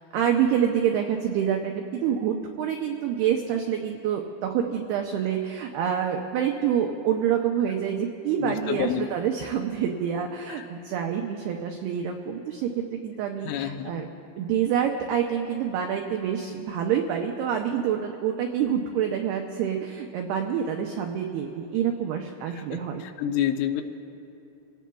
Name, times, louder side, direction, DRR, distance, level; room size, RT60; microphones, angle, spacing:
voice 1, 0.1-14.1 14.4-23.0, right 8 dB, 80° right, 3 dB, 2.3 m, -27 dB
voice 2, 8.4-9.1 10.6-10.7 13.4-14.0 22.6-23.8, left 10 dB, 90° left, 6 dB, 3.2 m, -29 dB
27.5 x 16.5 x 2.3 m, 2.6 s
omnidirectional pair, 5.4 m